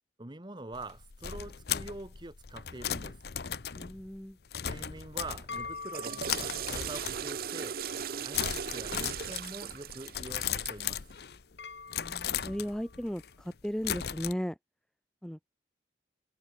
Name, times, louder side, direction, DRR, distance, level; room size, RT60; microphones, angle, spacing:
voice 1, 0.2-3.2 4.6-7.8 8.2-11.0, right 2 dB, 25° right, 1.2 m, -44 dB
sound 1, 0.7-5.8 6.2-7.5 7.8-8.1 8.3-11.5 11.9-14.3, left 9 dB, 60° left, 0.8 m, -37 dB
voice 2, 3.7-4.4 12.0-14.6 15.2-15.4, equal, 5° left, 0.5 m, -36 dB
sound 2, 5.0-13.4, left 4 dB, 80° left, 2.7 m, -48 dB
Water / Toilet flush, 5.6-10.9, right 8 dB, 55° right, 0.6 m, -38 dB
head